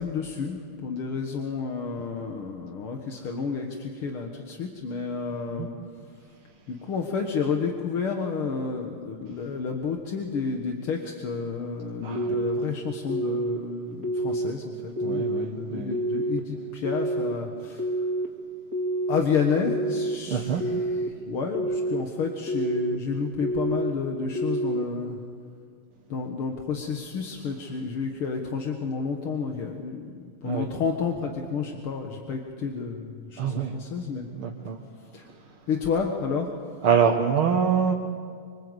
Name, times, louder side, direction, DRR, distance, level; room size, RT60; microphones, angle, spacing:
voice 1, 0.0-5.7 6.7-18.1 19.1-25.2 26.1-34.3 35.0-35.3 35.7-36.6, left 5 dB, 75° left, 2 dB, 2.4 m, -30 dB
voice 2, 12.0-12.3 15.0-16.0 20.3-20.6 30.4-30.7 33.4-33.7 34.3-34.8 36.8-37.9, right 7 dB, 75° right, 0 dB, 2.3 m, -25 dB
sound 1, 12.2-12.6 13.1-13.6 14.0-14.5 15.0-15.5 15.9-16.4 16.8-17.3 17.8-18.3 18.7-19.2 19.7-20.2 20.6-21.1 21.5-22.0 22.5-23.0 23.4-23.9 24.4-24.8, right 1 dB, 40° right, 3.1 m, -27 dB
25.5 x 25.0 x 8.1 m, 2.1 s
omnidirectional pair, 2.4 m